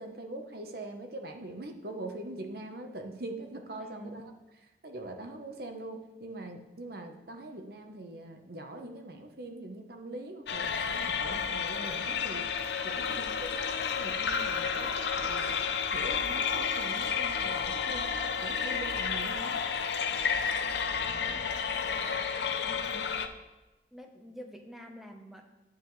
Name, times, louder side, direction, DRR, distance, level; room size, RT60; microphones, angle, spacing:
voice 1, 0.0-4.2 4.8-12.4 12.8-15.7 15.9-19.6, right 2 dB, 55° right, 4 dB, 0.9 m, -42 dB
voice 2, 3.8-4.2 13.0-13.4 21.2-22.1 22.6-23.2 23.9-25.5, equal, ahead, 2 dB, 0.8 m, -49 dB
sound 1, 10.5-23.3, left 6 dB, 65° left, 0.6 m, -31 dB
11.0 x 9.5 x 3.2 m, 1.1 s
head